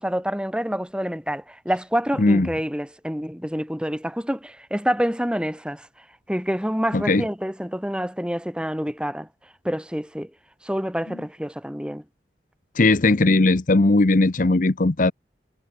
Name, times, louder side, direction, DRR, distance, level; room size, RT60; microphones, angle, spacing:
voice 1, 0.0-9.3 9.6-10.3 10.6-12.0, equal, 5° right, 6.3 m, -27 dB
voice 2, 2.2-2.5 6.9-7.2 12.7-15.1, left 2 dB, 50° left, 0.8 m, -18 dB
head